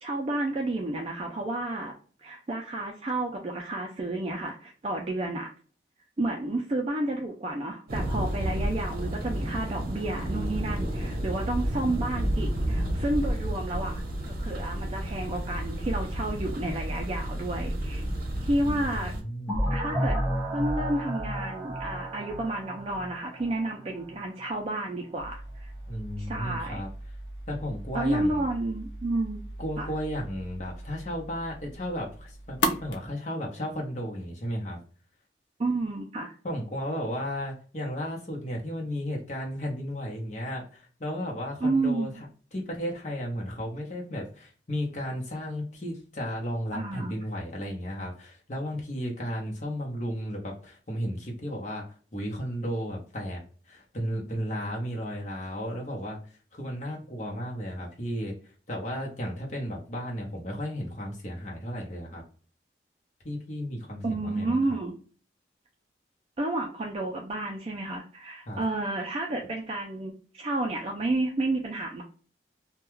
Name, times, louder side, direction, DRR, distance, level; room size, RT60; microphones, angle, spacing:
voice 1, 0.0-1.9 2.2-5.5 6.2-18.0 18.4-19.1 19.7-20.2 20.5-25.7 26.2-26.8 27.9-29.5 29.8-29.9 35.6-36.3 41.6-42.1 46.7-47.1 64.0-65.0 66.4-72.0, right 2 dB, 35° right, 0 dB, 0.4 m, -31 dB
Thunder, 7.9-19.2, right 1 dB, 55° right, 0.7 m, -31 dB
voice 2, 18.6-19.6 25.9-26.9 27.5-28.4 29.6-34.8 36.4-42.1 42.5-51.8 52.1-56.2 56.5-58.4 58.7-62.2 63.2-64.6 68.5-68.6, equal, 40° left, -1 dB, 0.8 m, -34 dB
sound 1, 19.5-24.2, equal, 5° left, 1.0 m, -31 dB
sound 2, 25.2-33.0, left 1 dB, 85° left, 0.5 m, -37 dB
2.3 x 2.2 x 3.0 m, 0.41 s
head